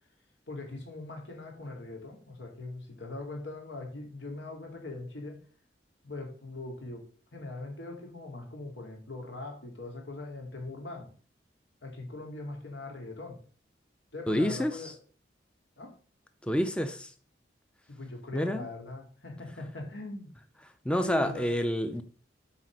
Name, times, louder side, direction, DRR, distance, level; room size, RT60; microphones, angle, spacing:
voice 1, 0.5-5.4 6.0-7.1 7.3-11.1 11.8-13.4 14.1-14.9 15.8-16.0 17.9-20.3 21.0-21.5, left 2 dB, 85° left, 2.7 m, -41 dB
voice 2, 14.3-14.9 16.4-17.1 18.3-18.7 20.8-22.0, equal, 5° left, 0.5 m, -28 dB
8.3 x 4.2 x 6.2 m
head